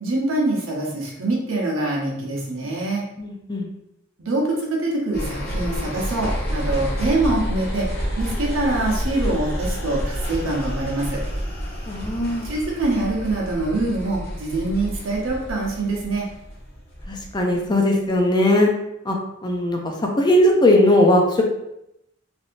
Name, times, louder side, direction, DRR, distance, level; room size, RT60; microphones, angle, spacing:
voice 1, 0.0-3.0 4.2-7.9 8.2-11.2 12.4-16.2, right 2 dB, 90° right, -2 dB, 0.9 m, -24 dB
voice 2, 3.2-3.7 11.9-12.5 17.1-18.7 19.1-19.2 19.4-19.8 20.2-21.4, left 1 dB, 20° left, 1 dB, 0.5 m, -18 dB
sound 1, 5.1-17.7 18.1-18.2, equal, 55° left, 1.3 m, -29 dB
3.4 x 2.7 x 2.6 m, 0.83 s
head